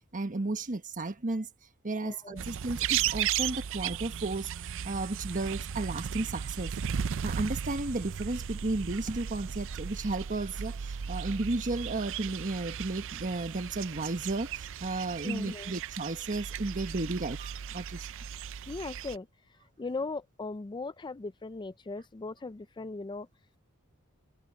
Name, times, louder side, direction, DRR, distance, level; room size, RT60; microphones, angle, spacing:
voice 1, 0.1-1.5 1.8-4.5 4.8-6.7 7.2-18.2, right 2 dB, 40° right, 1.3 m, -33 dB
voice 2, 2.0-2.4 15.2-15.7 18.7-19.3 19.8-23.3, left 3 dB, 20° left, 0.4 m, -38 dB
sound 1, 2.4-19.2, right 8 dB, 65° right, 0.5 m, -36 dB
head